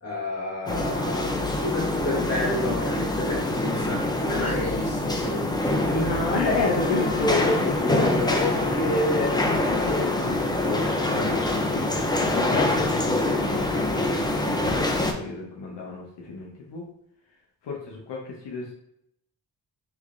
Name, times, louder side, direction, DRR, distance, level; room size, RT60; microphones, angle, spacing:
voice 1, 0.0-6.2, left 1 dB, 40° left, -4 dB, 1.4 m, -31 dB
sound 1, 0.7-15.1, left 1 dB, 10° left, 0.4 m, -25 dB
voice 2, 5.9-11.9 12.2-16.9 17.6-18.7, left 2 dB, 75° left, -2 dB, 0.8 m, -30 dB
Wind instrument woodwind instrument, 6.6-14.5, left 9 dB, 70° right, 1.1 m, -36 dB
3.4 x 3.2 x 2.5 m, 0.76 s
wide cardioid pair, 100°, 41 cm